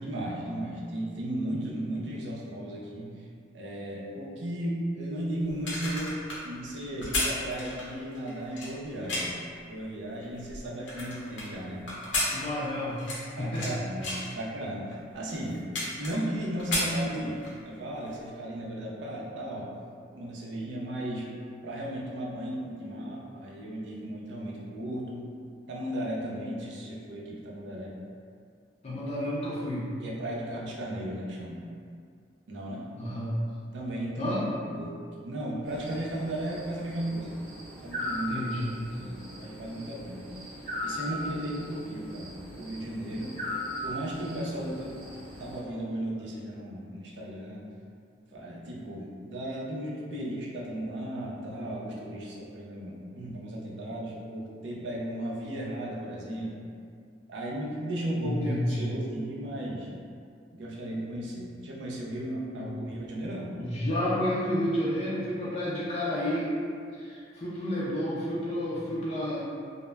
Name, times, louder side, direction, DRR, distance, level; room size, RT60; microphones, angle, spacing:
voice 1, 0.0-3.1 3.5-6.2 6.4-9.3 9.7-11.8 13.4-14.9 15.1-15.6 16.0-19.7 20.1-21.3 21.6-25.3 25.7-27.9 30.0-31.6 32.5-32.9 33.7-34.4 34.7-34.9 35.2-37.3 37.8-38.5 39.0-40.2 40.8-43.3 43.8-44.9 45.4-47.7 48.3-56.6 57.3-59.9 60.5-63.5, right 1 dB, 80° right, -4 dB, 0.5 m, -35 dB
sound 1, 5.5-9.5 10.0-11.5 11.9-13.7 14.0-14.3 14.9-15.0 15.3-16.3 16.6-17.6 18.0-18.1, left 2 dB, 90° left, 0.6 m, -32 dB
voice 2, 12.3-13.0 13.4-13.8 28.8-29.9 33.0-33.4 34.2-34.4 38.3-38.7 58.2-58.9 62.6-62.7 63.6-66.5 66.9-69.4, left 1 dB, 35° left, -8 dB, 0.4 m, -30 dB
sound 2, 35.7-45.6, left 1 dB, 30° right, 0.7 m, -39 dB
2.1 x 2.0 x 3.2 m, 2.3 s
head